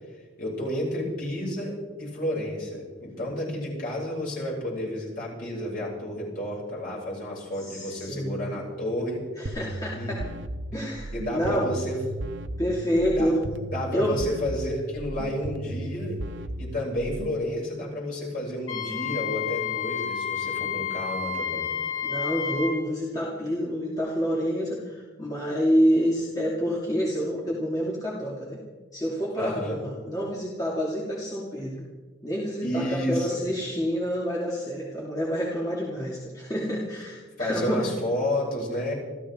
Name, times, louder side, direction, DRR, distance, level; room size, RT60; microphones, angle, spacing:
voice 1, 0.4-9.2 9.9-10.1 11.1-12.0 13.0-13.3 13.7-16.2 16.6-21.7 29.4-29.8 32.6-33.4 37.4-38.9, left 1 dB, 45° left, -4 dB, 7.2 m, -31 dB
voice 2, 7.7-8.6 9.4-10.2 10.7-11.7 12.6-13.4 13.9-14.2 22.0-28.6 28.9-31.9 32.2-37.9, equal, 20° left, -4 dB, 2.5 m, -28 dB
sound 1, 9.5-17.5, right 1 dB, 75° right, 0.9 m, -36 dB
Wind instrument woodwind instrument, 18.7-22.8, left 8 dB, 80° left, 3.0 m, -30 dB
28.0 x 13.5 x 3.8 m, 1.3 s
head